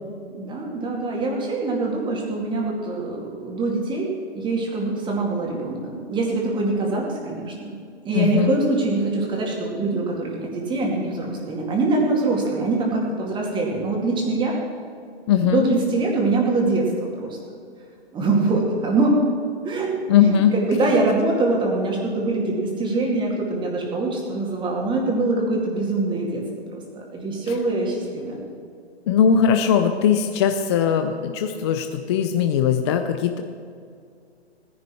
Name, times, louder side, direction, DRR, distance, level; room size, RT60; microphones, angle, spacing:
voice 1, 0.3-7.8 8.0-14.6 15.4-17.4 18.1-19.2 19.6-19.9 20.2-26.4 26.7-28.4, right 2 dB, 15° right, -1 dB, 2.3 m, -24 dB
voice 2, 8.1-8.6 15.3-15.6 20.1-20.5 29.1-33.4, left 8 dB, 25° left, 6 dB, 0.5 m, -19 dB
16.5 x 10.5 x 4.5 m, 2.3 s
hypercardioid pair, 135°, 33 cm